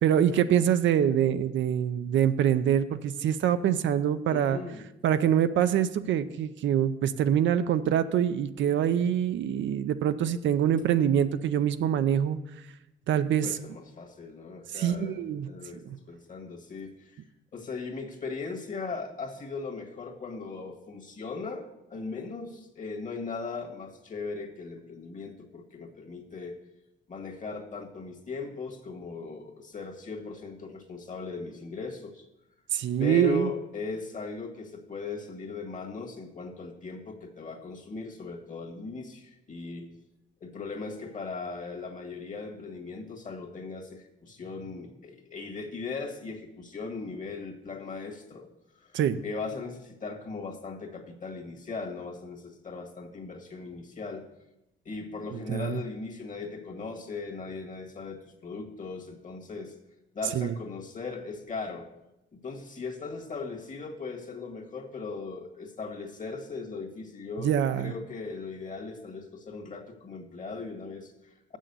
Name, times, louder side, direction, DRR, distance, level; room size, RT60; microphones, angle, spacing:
voice 1, 0.0-4.6 5.0-12.4 13.1-13.5 14.7-15.5 15.9-16.0 32.7-33.5 48.9-49.2 55.3-55.8 60.3-60.5 67.4-67.9, right 9 dB, 70° right, 11 dB, 0.5 m, -25 dB
voice 2, 4.3-4.8 13.4-15.2 15.5-17.2 17.5-26.6 27.1-32.3 33.0-39.9 40.4-48.5 48.7-54.2 54.8-59.7 60.1-61.9 62.3-71.6, left 4 dB, 40° left, 3 dB, 1.7 m, -38 dB
7.7 x 6.3 x 6.8 m, 0.91 s
cardioid pair, 90°, 20 cm